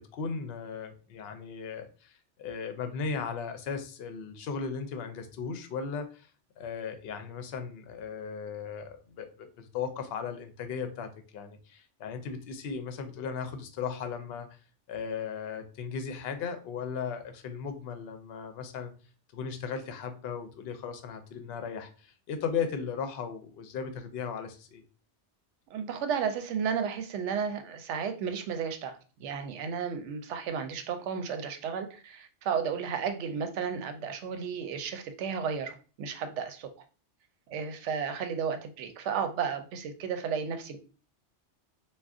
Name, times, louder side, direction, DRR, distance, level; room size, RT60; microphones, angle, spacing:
voice 1, 0.0-6.3 6.6-14.6 14.9-18.9 19.3-24.8, left 6 dB, 65° left, 7 dB, 0.7 m, -37 dB
voice 2, 25.7-36.7 37.5-40.8, right 6 dB, 80° right, 8 dB, 0.9 m, -33 dB
2.4 x 2.2 x 3.6 m, 0.36 s
omnidirectional pair, 1.2 m